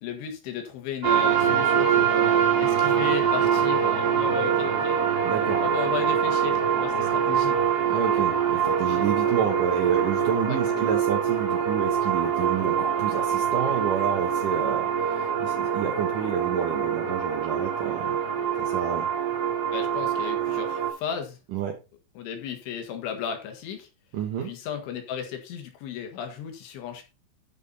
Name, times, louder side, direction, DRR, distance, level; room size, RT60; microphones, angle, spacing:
voice 1, 0.0-5.1 5.6-7.6 8.9-9.1 10.5-10.9 19.7-21.4 22.2-23.9 24.4-27.0, left 8 dB, 75° left, 4 dB, 3.9 m, -35 dB
sound 1, 1.0-20.9, right 8 dB, 50° right, 2.0 m, -24 dB
voice 2, 5.2-5.6 7.9-18.2 18.6-19.1 21.5-21.8 24.1-24.5, right 8 dB, 85° right, 3 dB, 1.8 m, -29 dB
12.0 x 5.5 x 4.1 m, 0.28 s
omnidirectional pair, 5.6 m